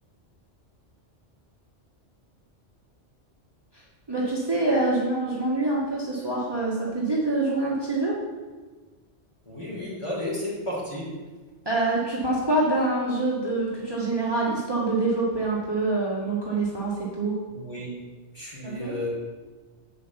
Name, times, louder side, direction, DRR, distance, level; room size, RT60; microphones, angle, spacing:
voice 1, 4.1-8.2 11.6-17.4 18.6-19.0, right 2 dB, 20° right, -5 dB, 1.7 m, -25 dB
voice 2, 9.4-11.1 17.5-17.9 18.3-19.1, left 1 dB, 25° left, -6 dB, 3.3 m, -32 dB
8.5 x 5.1 x 7.0 m, 1.3 s
omnidirectional pair, 1.2 m